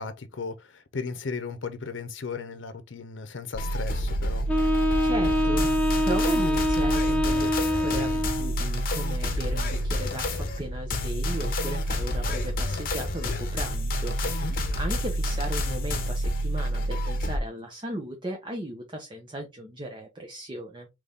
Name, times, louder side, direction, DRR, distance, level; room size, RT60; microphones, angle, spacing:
voice 1, 0.0-4.5 14.2-14.6, left 4 dB, 85° left, 0.6 m, -36 dB
sound 1, 3.5-17.4, equal, 50° left, 0.9 m, -28 dB
Wind instrument woodwind instrument, 4.5-8.6, left 1 dB, 10° left, 0.6 m, -25 dB
voice 2, 5.0-20.9, right 1 dB, 25° right, 0.7 m, -36 dB
4.0 x 3.1 x 3.4 m
head